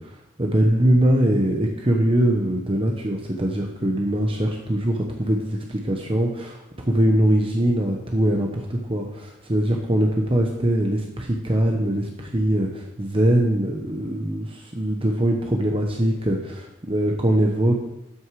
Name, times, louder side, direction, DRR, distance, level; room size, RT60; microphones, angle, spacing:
voice 1, 0.0-17.7, right 1 dB, 30° right, 1 dB, 1.0 m, -22 dB
12.5 x 6.5 x 4.9 m, 0.95 s
head